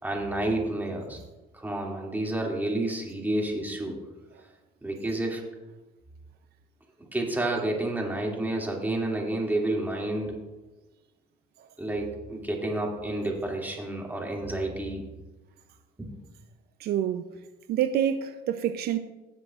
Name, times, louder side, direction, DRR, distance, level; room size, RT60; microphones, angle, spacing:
voice 1, 0.0-1.2 1.5-4.0 4.8-5.4 7.1-10.4 11.8-15.0 16.0-16.1, right 1 dB, 10° right, 2.5 m, -30 dB
voice 2, 16.8-17.4 17.7-19.0, right 10 dB, 70° right, 0.6 m, -27 dB
17.5 x 7.6 x 2.5 m
cardioid pair, 110°, 17 cm